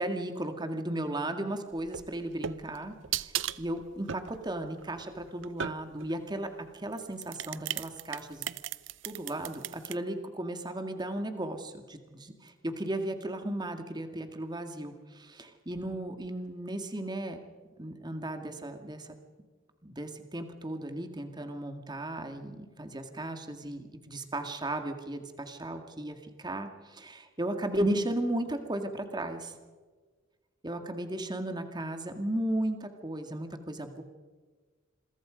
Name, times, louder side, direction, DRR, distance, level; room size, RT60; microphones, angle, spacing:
voice 1, 0.0-3.3 3.6-6.5 6.7-8.5 9.0-17.4 17.8-19.1 19.8-29.6 30.6-34.0, right 1 dB, 20° right, 6 dB, 2.0 m, -35 dB
sound 1, 1.8-6.1 6.9-9.9, right 10 dB, 65° right, 0.7 m, -37 dB
27.0 x 22.5 x 5.2 m, 1.4 s
head